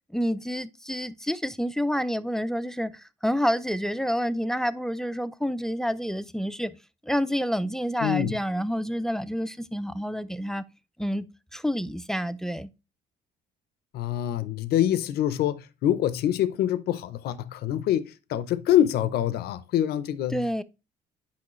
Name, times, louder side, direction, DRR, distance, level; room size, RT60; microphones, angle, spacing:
voice 1, 0.1-6.8 7.0-10.6 11.0-11.3 11.5-12.7 20.3-20.6, equal, 5° left, 0.4 m, -28 dB
voice 2, 8.0-8.4 13.9-20.6, left 11 dB, 70° left, 0.7 m, -25 dB
8.6 x 5.4 x 3.1 m
cardioid pair, 110°, 17 cm